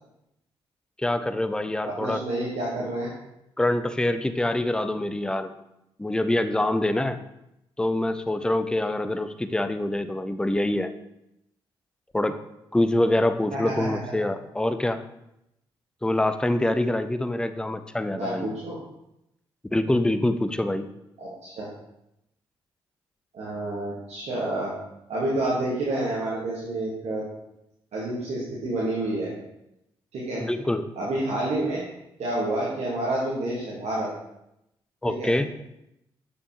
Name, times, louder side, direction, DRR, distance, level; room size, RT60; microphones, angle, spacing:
voice 1, 1.0-2.2 3.6-5.5 6.0-7.2 7.8-10.9 12.1-12.4 12.7-15.0 16.0-18.5 19.7-20.9 30.4-30.9 35.0-35.5, left 1 dB, 5° left, 10 dB, 0.5 m, -25 dB
voice 2, 1.9-3.1 13.5-13.9 18.1-18.8 21.2-21.7 23.3-24.7 25.1-27.2 27.9-29.3 30.1-30.4 31.0-31.8 32.2-34.1 35.0-35.3, right 1 dB, 60° right, -5 dB, 1.4 m, -29 dB
6.6 x 5.2 x 2.9 m, 0.83 s
hypercardioid pair, 40°, 13 cm